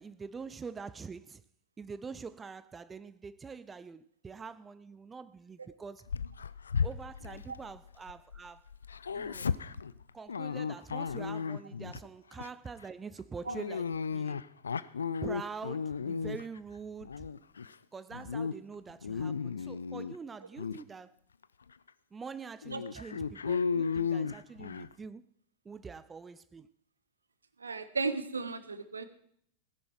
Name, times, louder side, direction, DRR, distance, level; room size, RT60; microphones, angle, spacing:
voice 1, 0.0-1.4 1.8-6.1 6.8-8.6 9.1-9.5 10.1-14.4 15.2-17.3 17.9-21.1 22.1-25.3 25.7-26.7, right 5 dB, 15° right, 0.4 m, -45 dB
Dog, 6.1-8.4 8.7-12.0 12.4-12.7 13.5-16.6 17.0-17.7 18.1-18.5 18.9-20.2 20.6-20.8 21.4-21.5 21.9-22.0 22.6-24.9, left 6 dB, 70° left, 0.4 m, -34 dB
voice 2, 27.6-29.1, right 4 dB, 75° right, 0.9 m, -35 dB
17.5 x 10.5 x 4.6 m
figure-of-eight pair, 90°, 0 cm